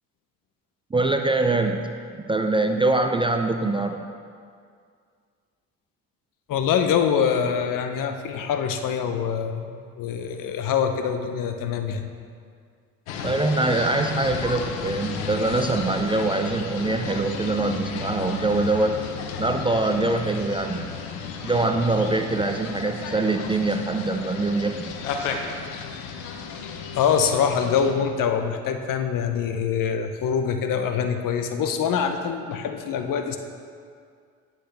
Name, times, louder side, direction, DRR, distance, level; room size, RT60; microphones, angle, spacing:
voice 1, 0.9-4.0 13.2-19.0 19.4-20.9 21.4-25.0, right 2 dB, 15° right, 5 dB, 0.4 m, -24 dB
voice 2, 6.5-12.1 26.9-33.4, left 7 dB, 55° left, 7 dB, 0.8 m, -24 dB
sound 1, 13.1-27.9, left 6 dB, 90° left, 0.7 m, -33 dB
9.9 x 6.2 x 3.4 m, 2.2 s
supercardioid pair, 70°, 38 cm